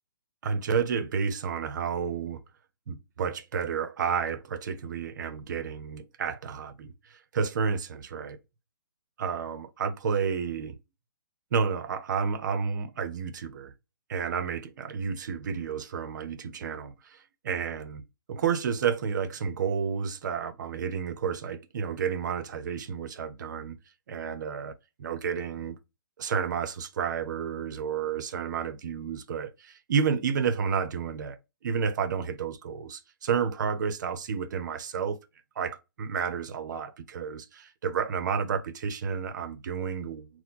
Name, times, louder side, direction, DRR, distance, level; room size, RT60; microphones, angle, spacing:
voice 1, 0.4-2.4 2.9-6.9 7.3-8.4 9.2-10.8 11.5-13.7 14.1-17.2 17.4-18.0 18.3-23.8 24.1-25.8 26.2-31.4 31.6-35.2 35.6-40.3, right 6 dB, 55° right, 0.8 m, -31 dB
4.4 x 2.2 x 3.8 m
hypercardioid pair, 150°, 12 cm